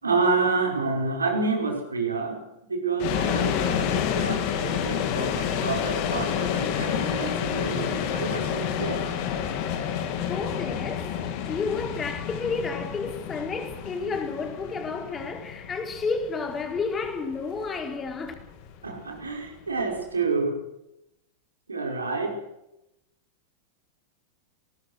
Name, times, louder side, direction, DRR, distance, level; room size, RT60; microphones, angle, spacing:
voice 1, 0.0-2.4 2.7-9.1 18.8-20.6 21.7-22.4, right 4 dB, 75° right, 5.5 m, -28 dB
sound 1, 3.0-20.0, left 9 dB, 45° left, 3.4 m, -29 dB
voice 2, 10.3-11.2 11.5-18.3, left 4 dB, 20° left, 4.2 m, -31 dB
20.5 x 19.5 x 6.5 m
figure-of-eight pair, 90°, 0 cm